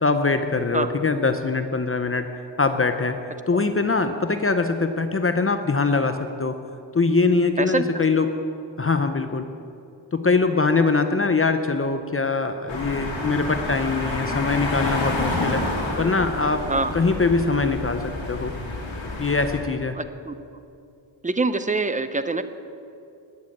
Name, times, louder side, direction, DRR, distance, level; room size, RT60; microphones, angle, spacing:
voice 1, 0.0-2.3 2.6-3.2 3.5-6.5 6.9-8.3 8.8-9.5 10.1-15.6 16.0-16.7 16.9-18.5 19.2-20.0, left 4 dB, 30° left, 7 dB, 0.7 m, -22 dB
sound 1, 12.7-19.6, left 2 dB, 85° left, 3.1 m, -29 dB
voice 2, 19.9-20.4 21.2-22.4, right 3 dB, 15° right, 10 dB, 0.7 m, -24 dB
20.0 x 7.6 x 8.5 m, 2.5 s
wide cardioid pair, 135°, 45 cm